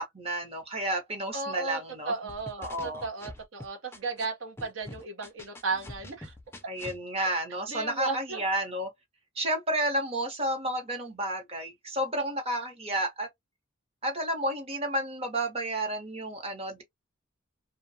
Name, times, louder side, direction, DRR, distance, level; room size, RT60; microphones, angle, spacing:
voice 1, 0.0-2.1 2.6-3.1 6.7-8.9 9.4-13.3 14.0-16.8, right 1 dB, 30° right, 0.9 m, -31 dB
voice 2, 1.3-6.3 7.2-7.3 7.7-8.4, right 3 dB, 70° right, 0.9 m, -35 dB
sound 1, 2.3-4.3 4.6-7.0, left 2 dB, 10° left, 0.4 m, -44 dB
2.3 x 2.2 x 2.7 m
head